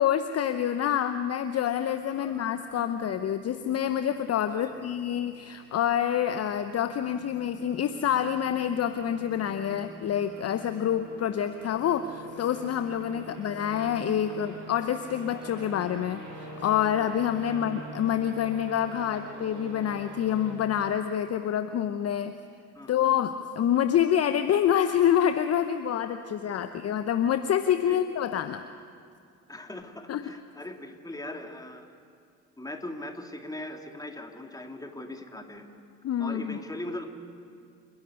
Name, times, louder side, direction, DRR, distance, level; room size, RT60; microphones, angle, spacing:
voice 1, 0.0-22.3 22.9-28.6 30.1-30.3 36.0-36.6, left 9 dB, 35° left, 10 dB, 0.9 m, -27 dB
sound 1, 1.8-20.5, right 1 dB, 45° right, 6.2 m, -46 dB
voice 2, 2.2-2.5 4.5-4.9 13.1-13.4 14.3-14.4 17.5-17.6 22.7-22.9 26.4-26.5 27.9-28.0 29.5-31.9 32.6-35.7 36.2-37.0, left 1 dB, 10° left, 4 dB, 2.5 m, -40 dB
29.0 x 11.0 x 9.7 m, 2.4 s
hypercardioid pair, 60°, 41 cm